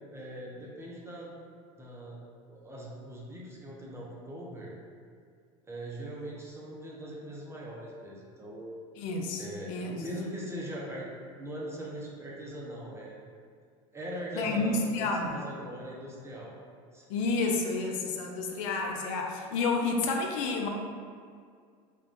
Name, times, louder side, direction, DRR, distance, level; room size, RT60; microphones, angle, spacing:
voice 1, 0.1-1.3 1.8-2.2 2.5-4.7 5.7-8.7 9.4-11.1 11.4-13.2 13.9-16.5 16.9-17.0, right 1 dB, 15° right, -5 dB, 0.6 m, -41 dB
voice 2, 9.0-10.0 14.3-15.4 17.1-20.7, left 3 dB, 75° left, 2 dB, 0.5 m, -30 dB
2.4 x 2.2 x 3.5 m, 2.1 s
supercardioid pair, 100°, 16 cm